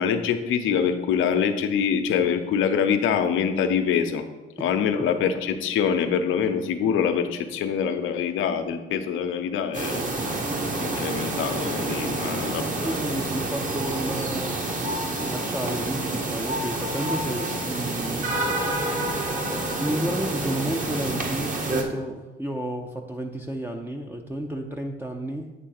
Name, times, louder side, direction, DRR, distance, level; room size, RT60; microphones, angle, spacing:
voice 1, 0.0-4.2 4.6-10.1 10.8-12.9, left 7 dB, 90° left, 7 dB, 0.8 m, -25 dB
sound 1, 9.7-21.8, right 2 dB, 40° right, 1.4 m, -28 dB
voice 2, 12.8-14.6 15.2-18.4 19.8-25.5, right 1 dB, 10° right, 3 dB, 0.6 m, -31 dB
8.9 x 3.4 x 6.5 m, 1.2 s
cardioid pair, 90°, 20 cm